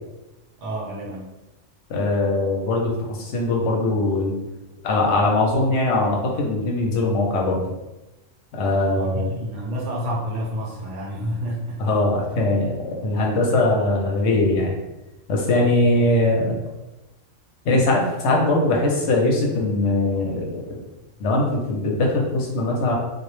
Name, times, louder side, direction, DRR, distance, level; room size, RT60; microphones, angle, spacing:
voice 1, 0.6-1.3 8.9-11.8, equal, 70° right, -2 dB, 0.9 m, -29 dB
voice 2, 1.9-4.3 4.8-7.7 8.5-9.3 11.8-14.8 15.3-16.5 17.7-20.6 21.2-22.9, left 2 dB, 65° left, -1 dB, 0.8 m, -21 dB
2.2 x 2.0 x 3.0 m, 1.0 s
omnidirectional pair, 1.3 m